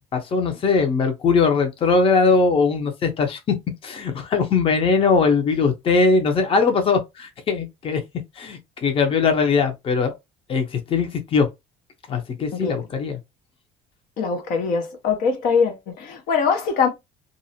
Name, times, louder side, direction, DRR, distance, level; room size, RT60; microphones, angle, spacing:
voice 1, 0.1-3.5 3.8-8.0 8.4-10.1 10.5-11.5 12.1-13.2, left 4 dB, 35° left, 0.7 m, -20 dB
voice 2, 14.2-16.9, left 5 dB, 70° left, 0.8 m, -22 dB
2.6 x 2.1 x 2.7 m
cardioid pair, 110°, 15 cm